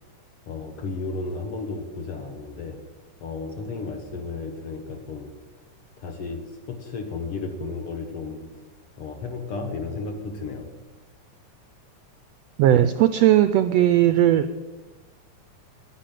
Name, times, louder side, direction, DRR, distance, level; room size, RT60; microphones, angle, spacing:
voice 1, 0.5-2.8 3.2-5.4 6.0-8.4 9.0-10.7, left 3 dB, 55° left, 5 dB, 1.8 m, -33 dB
voice 2, 12.6-14.5, right 12 dB, 85° right, 11 dB, 1.5 m, -17 dB
10.5 x 10.0 x 9.2 m, 1.2 s
omnidirectional pair, 3.6 m